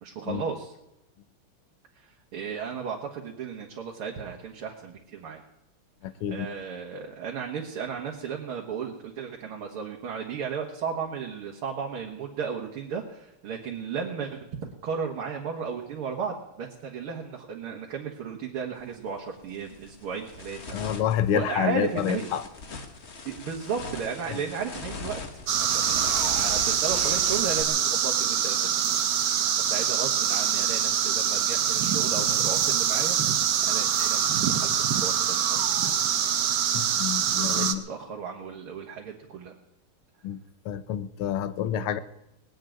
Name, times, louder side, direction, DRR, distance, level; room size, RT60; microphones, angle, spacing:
voice 1, 0.0-0.7 2.0-5.4 6.3-21.0 21.3-22.3 23.3-25.2 25.6-29.0 29.6-35.9 37.3-39.6, right 6 dB, 80° right, 0 dB, 2.4 m, -35 dB
voice 2, 6.0-6.5 20.7-22.4 24.3-24.4 36.7-37.8 40.2-42.0, left 10 dB, 85° left, 13 dB, 1.7 m, -28 dB
sound 1, 18.8-18.9 19.4-27.6, left 3 dB, 35° left, 1.4 m, -40 dB
sound 2, 25.5-37.7, right 9 dB, 60° right, 1.4 m, -24 dB
19.5 x 7.5 x 9.2 m, 0.87 s
omnidirectional pair, 2.4 m